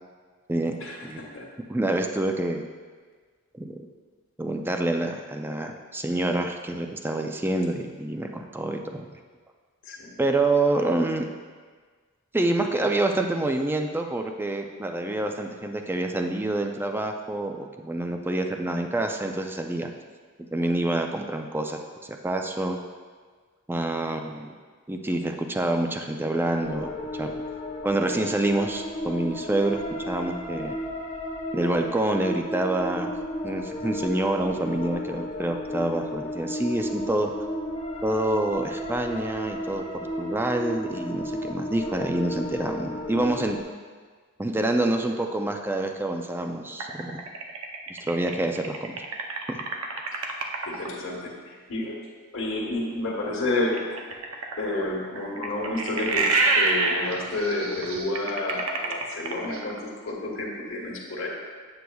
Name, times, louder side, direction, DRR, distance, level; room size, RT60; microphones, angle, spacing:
voice 1, 0.8-1.5 9.8-10.2 50.6-52.0 52.3-54.2 54.6-61.3, left 2 dB, 65° left, -3 dB, 1.4 m, -30 dB
voice 2, 1.7-2.7 3.6-3.8 4.4-9.1 10.2-11.3 12.3-19.9 20.5-21.8 22.1-22.8 23.7-24.5 24.9-27.3 27.8-29.8 30.1-30.7 31.5-33.1 33.4-37.3 38.0-43.6 44.4-47.2 47.9-48.9 49.5-49.6, right 2 dB, 10° right, 4 dB, 0.4 m, -27 dB
sound 1, 26.6-43.6, left 1 dB, 30° left, 0.7 m, -33 dB
Creepy Noise, 46.8-50.9 53.7-59.8, right 3 dB, 75° right, 0.7 m, -27 dB
8.2 x 7.7 x 2.3 m, 1.5 s
head